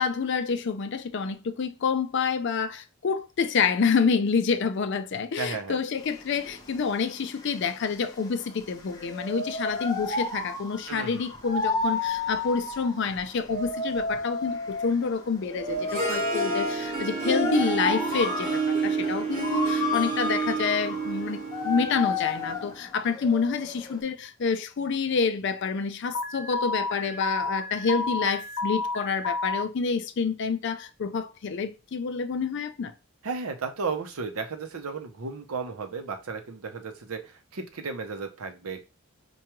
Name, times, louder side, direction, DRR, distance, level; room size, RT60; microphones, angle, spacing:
voice 1, 0.0-32.9, left 5 dB, 55° left, 0.4 m, -28 dB
voice 2, 5.4-5.8 10.9-11.2 33.2-38.8, right 4 dB, 85° right, 0.7 m, -34 dB
sound 1, 6.0-24.0, left 3 dB, 15° left, 0.7 m, -32 dB
Harp, 15.6-22.7, right 4 dB, 30° right, 1.0 m, -29 dB
Alarm, 26.1-29.6, left 3 dB, 85° left, 0.7 m, -31 dB
4.7 x 2.3 x 2.9 m
head